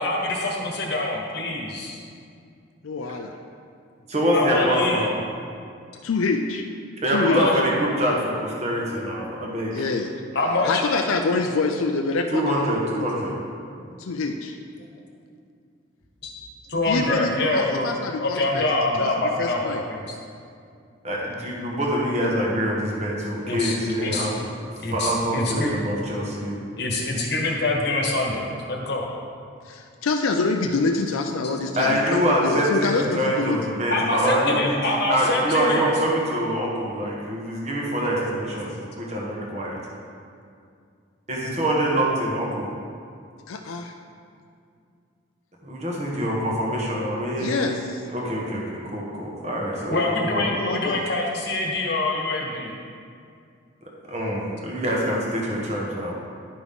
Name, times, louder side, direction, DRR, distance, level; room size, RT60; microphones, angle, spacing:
voice 1, 0.0-2.0 4.3-5.1 7.3-7.6 10.3-10.8 13.7-14.0 16.2-16.3 16.7-17.9 18.2-20.2 23.4-24.3 24.8-25.7 26.7-29.0 33.9-35.9 49.9-52.7, left 2 dB, 50° left, -1 dB, 1.2 m, -25 dB
voice 2, 2.8-3.3 6.0-6.7 7.1-7.4 9.7-10.1 10.6-13.1 14.0-14.6 16.9-18.7 19.0-19.1 19.4-19.8 29.6-33.6 43.5-43.9 47.4-48.0 50.6-51.1, left 3 dB, 85° left, 4 dB, 0.5 m, -26 dB
voice 3, 4.1-5.1 7.0-9.8 12.3-13.4 21.0-24.3 24.9-26.6 31.8-34.7 35.1-39.8 41.3-42.7 45.6-47.8 48.1-50.5 53.8-56.2, equal, 30° right, -3 dB, 1.3 m, -25 dB
11.0 x 6.0 x 3.7 m, 2.3 s
head